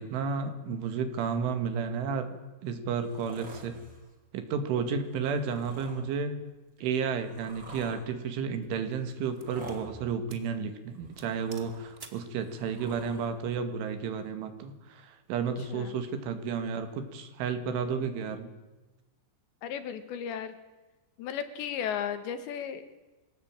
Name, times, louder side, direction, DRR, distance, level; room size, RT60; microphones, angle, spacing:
voice 1, 0.0-2.4 2.6-3.8 4.3-6.4 6.8-18.5, right 6 dB, 80° right, 8 dB, 4.4 m, -32 dB
sound 1, 3.0-4.1 5.3-6.0 6.8-8.0 9.3-9.9 10.9-12.0 12.3-13.3 14.3-14.4, right 2 dB, 25° right, 6.1 m, -48 dB
sound 2, 7.9-8.0 8.6-9.8 10.3-10.5 10.8-10.9 11.2-12.3, right 3 dB, 50° right, 0.6 m, -51 dB
voice 2, 19.6-20.5 21.2-22.9, left 8 dB, 70° left, 11 dB, 3.6 m, -35 dB
25.0 x 16.5 x 9.0 m, 1.1 s
omnidirectional pair, 5.5 m